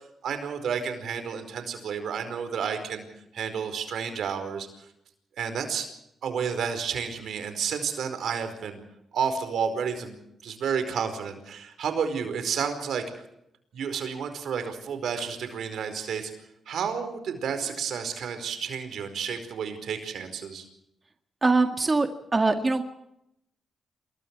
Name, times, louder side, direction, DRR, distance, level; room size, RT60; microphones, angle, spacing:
voice 1, 0.2-3.0 3.3-4.7 5.4-5.9 6.2-8.8 9.1-10.2 10.4-13.0 13.7-16.3 16.7-20.6, right 7 dB, 80° right, 8 dB, 4.8 m, -31 dB
voice 2, 21.4-22.8, right 3 dB, 30° right, 6 dB, 1.9 m, -23 dB
28.5 x 21.5 x 4.8 m, 0.79 s
cardioid pair, 80°, 0 cm